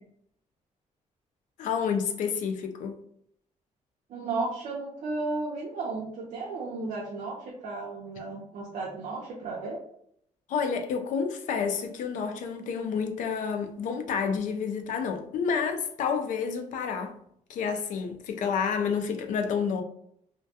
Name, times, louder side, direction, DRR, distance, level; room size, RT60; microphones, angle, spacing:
voice 1, 1.6-3.0 10.5-17.2 17.5-19.8, left 6 dB, 75° left, 0.4 m, -29 dB
voice 2, 4.1-9.8, right 3 dB, 65° right, 0.6 m, -34 dB
2.2 x 2.1 x 2.7 m
wide cardioid pair, 175°, 13 cm